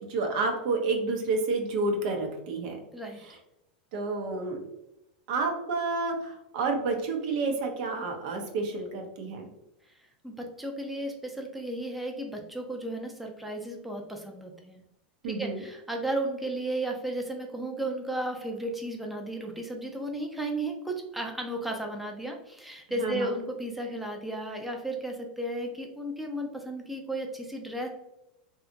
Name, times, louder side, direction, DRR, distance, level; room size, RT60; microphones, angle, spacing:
voice 1, 0.1-2.8 3.3-3.4 3.9-4.6 5.3-9.5 15.2-15.6 23.0-23.4, right 3 dB, 60° right, 3 dB, 0.7 m, -30 dB
voice 2, 10.2-14.8 15.3-27.9, right 1 dB, ahead, 1 dB, 0.5 m, -34 dB
2.8 x 2.3 x 2.5 m, 0.88 s
supercardioid pair, 125°, 5 cm